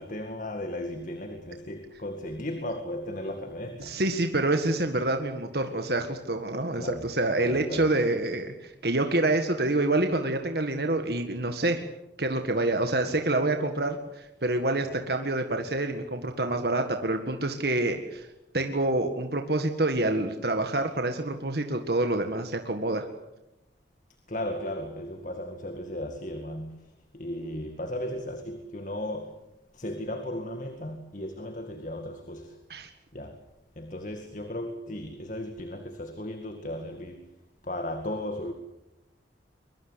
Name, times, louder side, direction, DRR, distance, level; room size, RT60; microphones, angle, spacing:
voice 1, 0.0-4.0 6.7-7.1 7.4-7.9 24.3-29.4 29.7-32.6 33.1-33.5 33.8-37.4 37.6-38.5, left 1 dB, 45° left, 2.1 m, -36 dB
voice 2, 3.8-11.8 12.2-18.3 18.5-23.1 32.7-32.9, right 2 dB, 60° right, 1.9 m, -27 dB
22.5 x 22.5 x 8.2 m
head